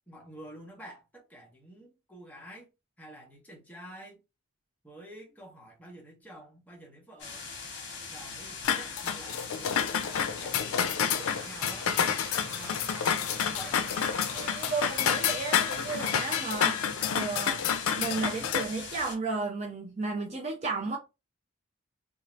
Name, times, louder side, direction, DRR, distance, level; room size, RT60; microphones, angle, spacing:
voice 1, 0.1-2.7 3.0-4.2 4.8-7.5 8.1-13.9, right 1 dB, 10° left, 0.8 m, -49 dB
sound 1, 7.2-19.1, left 4 dB, 55° left, 1.0 m, -41 dB
sound 2, 8.6-18.6, left 8 dB, 90° left, 0.4 m, -29 dB
sound 3, 11.1-16.6, right 2 dB, 70° right, 0.7 m, -45 dB
voice 2, 14.3-21.0, right 3 dB, 30° right, 0.5 m, -34 dB
2.7 x 2.4 x 3.0 m
head